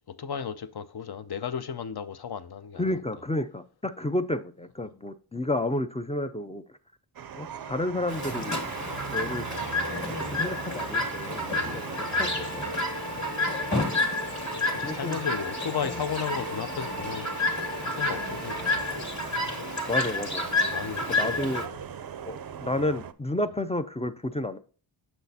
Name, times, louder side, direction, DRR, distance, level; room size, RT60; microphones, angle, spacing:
voice 1, 0.1-2.9 11.5-11.8 14.6-19.0 20.7-21.8, left 7 dB, 50° left, 0.6 m, -35 dB
voice 2, 2.8-6.6 7.3-8.6 9.1-9.4 10.1-12.7 14.8-15.2 15.8-16.0 19.9-20.4 21.1-21.6 22.3-24.6, left 1 dB, 15° left, 0.4 m, -31 dB
sound 1, 7.1-23.1, right 8 dB, 45° right, 0.5 m, -40 dB
Chirp tweet, 8.1-21.7, left 2 dB, 35° left, 1.9 m, -30 dB
sound 2, 11.9-18.9, equal, 90° left, 2.2 m, -39 dB
6.8 x 6.2 x 2.7 m
cardioid pair, 55°, 50 cm